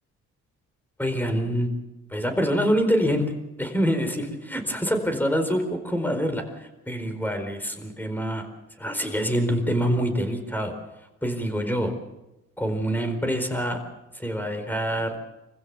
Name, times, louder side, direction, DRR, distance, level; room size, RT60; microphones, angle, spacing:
voice 1, 1.0-1.7 2.1-8.4 8.8-10.7 11.2-11.9 12.6-13.8 14.1-15.1, equal, 5° left, 6 dB, 4.5 m, -26 dB
26.0 x 15.5 x 7.1 m, 0.98 s
cardioid pair, 90°, 30 cm